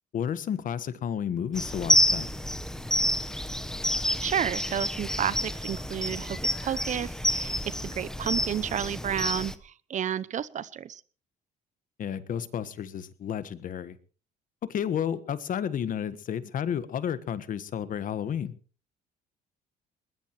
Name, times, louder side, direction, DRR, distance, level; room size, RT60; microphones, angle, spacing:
voice 1, 0.1-2.3 12.0-14.0 14.6-18.5, left 8 dB, 50° left, 14 dB, 1.4 m, -31 dB
sound 1, 1.5-9.5, left 1 dB, 5° left, 1.1 m, -29 dB
voice 2, 4.2-11.0, right 9 dB, 45° right, 19 dB, 0.8 m, -31 dB
21.0 x 20.0 x 3.1 m, 0.39 s
cardioid pair, 110°, 17 cm